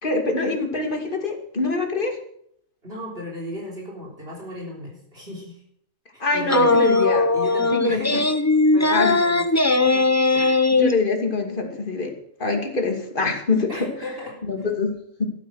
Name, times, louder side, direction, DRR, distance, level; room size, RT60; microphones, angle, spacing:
voice 1, 0.0-2.2 6.2-7.3 7.7-8.2 8.9-9.2 10.8-12.1 12.4-13.9 14.5-14.9 15.2-15.3, left 3 dB, 40° left, 3 dB, 2.7 m, -24 dB
voice 2, 2.8-5.6 6.1-6.8 7.3-8.3 8.7-9.5 9.8-10.7 12.4-12.5 13.7-14.7, left 1 dB, 45° right, 0 dB, 3.9 m, -36 dB
sound 1, 6.5-10.9, left 3 dB, 15° left, 0.8 m, -19 dB
13.0 x 12.0 x 6.4 m, 0.69 s
omnidirectional pair, 1.4 m